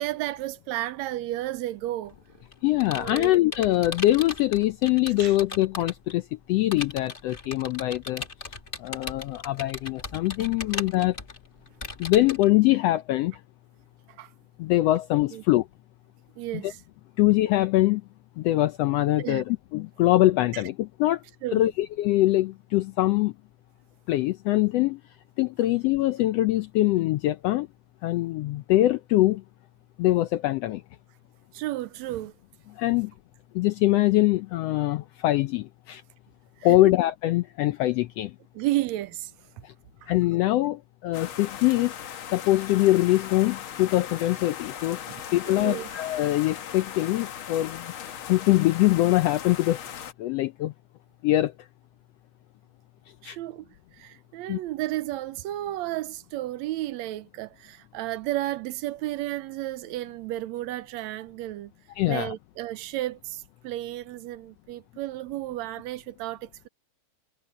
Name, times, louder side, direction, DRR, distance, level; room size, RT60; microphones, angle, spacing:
voice 1, 0.0-2.1 2.9-3.3 5.2-5.3 14.2-14.3 15.3-15.4 16.4-16.8 19.2-19.4 20.5-20.6 21.4-21.7 31.5-32.3 36.7-36.8 38.5-39.3 40.0-40.1 45.1-45.9 53.2-53.7 54.0-61.7 62.1-66.7, right 15 dB, 80° right, 1.9 m, -32 dB
Computer keyboard, 2.1-6.1 6.7-12.5, left 3 dB, 25° left, 1.4 m, -38 dB
voice 2, 2.6-8.2 8.8-11.2 12.0-13.4 14.6-15.7 16.6-16.7 17.2-18.0 18.4-21.2 21.5-23.3 24.1-25.0 25.4-27.7 28.0-29.4 30.0-30.8 32.8-33.1 33.5-36.0 36.6-38.3 39.6-39.7 40.1-41.9 42.3-45.0 45.3-47.9 48.3-49.8 50.2-50.7 51.2-51.7 53.2-53.4 54.5-54.6 62.0-62.3, left 16 dB, 80° left, 1.4 m, -23 dB
sound 1, 41.1-50.1, left 9 dB, 60° left, 1.6 m, -39 dB
omnidirectional pair, 3.4 m